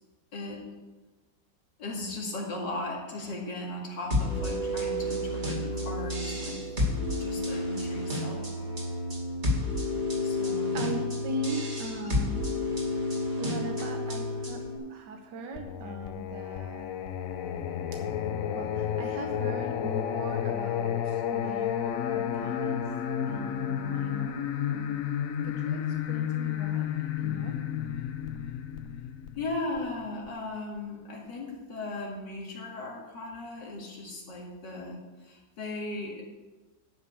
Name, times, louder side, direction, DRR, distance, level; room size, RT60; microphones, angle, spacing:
voice 1, 0.3-0.7 1.8-6.7 7.2-8.5 10.2-10.9 11.6-11.7 12.0-12.2 13.8-13.9 29.4-36.3, left 2 dB, 90° left, -2 dB, 2.8 m, -37 dB
sound 1, 4.1-14.8, left 2 dB, 40° right, 2.6 m, -30 dB
voice 2, 10.7-12.5 13.4-14.6 14.9-16.9 18.5-22.8 23.2-24.4 24.7-26.9 27.2-27.5, right 2 dB, 80° right, 3 dB, 1.6 m, -39 dB
Singing, 15.6-30.3, left 9 dB, 60° left, 1.0 m, -31 dB
11.5 x 5.4 x 7.0 m, 1.2 s
omnidirectional pair, 1.9 m